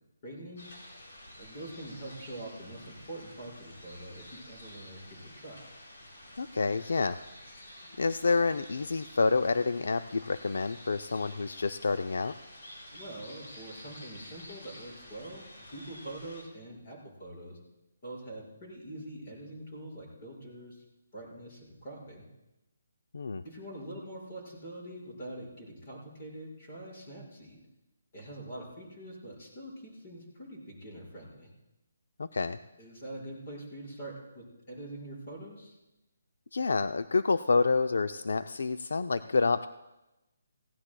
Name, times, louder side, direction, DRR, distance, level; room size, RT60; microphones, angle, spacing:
voice 1, 0.2-0.7 1.4-5.7 12.9-17.6 18.0-20.8 21.1-22.2 23.4-27.6 28.1-31.5 32.8-35.8, right 1 dB, 30° left, -4 dB, 5.1 m, -44 dB
sound 1, 0.6-16.4, left 1 dB, 60° left, 5.3 m, -50 dB
voice 2, 6.4-7.2 8.0-12.3 23.1-23.4 32.2-32.6 36.5-39.7, left 4 dB, 75° left, 11 dB, 0.4 m, -28 dB
19.5 x 16.5 x 2.2 m, 0.96 s
hypercardioid pair, 170°, 0 cm